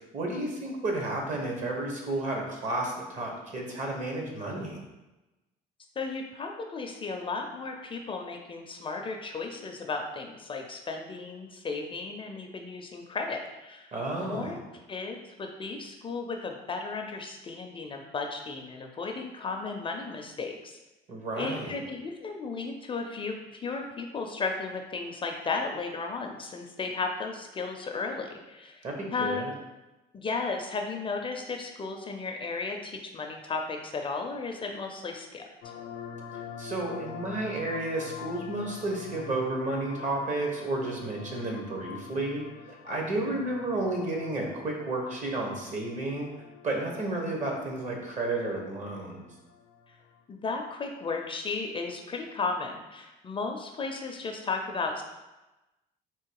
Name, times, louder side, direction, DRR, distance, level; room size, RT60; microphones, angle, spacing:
voice 1, 0.1-4.8 13.9-14.6 21.1-21.8 28.8-29.5 36.6-42.4 42.8-46.3 46.6-49.3, right 2 dB, 45° right, 0 dB, 1.2 m, -32 dB
voice 2, 6.0-13.9 14.2-14.6 14.9-20.8 21.4-29.5 30.1-35.4 43.1-43.3 50.3-55.0, left 4 dB, 30° left, 3 dB, 0.5 m, -34 dB
sound 1, 35.6-50.2, left 7 dB, 80° left, 0.6 m, -46 dB
3.7 x 2.8 x 4.7 m, 1.0 s
cardioid pair, 110°, 17 cm